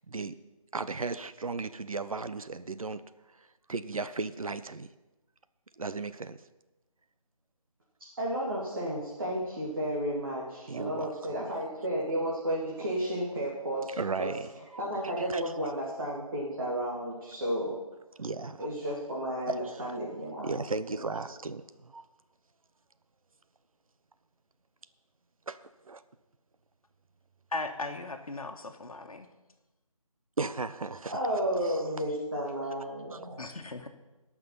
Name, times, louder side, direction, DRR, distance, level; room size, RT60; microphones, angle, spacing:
voice 1, 0.7-3.0 3.7-4.9 5.8-6.4 10.7-11.5 14.0-15.5 18.2-18.7 19.5-19.9 20.4-22.0 25.5-25.6 25.9-26.0 30.4-31.2 31.6-31.8 33.1-33.2, right 4 dB, 70° right, 13 dB, 0.8 m, -36 dB
voice 2, 8.2-14.3 14.8-17.7 18.6-20.5 20.9-21.0 31.1-33.4, equal, 40° right, -6 dB, 2.4 m, -32 dB
voice 3, 27.5-29.3 33.4-33.9, left 2 dB, 75° left, 3 dB, 1.4 m, -37 dB
18.0 x 5.9 x 5.6 m, 1.1 s
figure-of-eight pair, 175°, 18 cm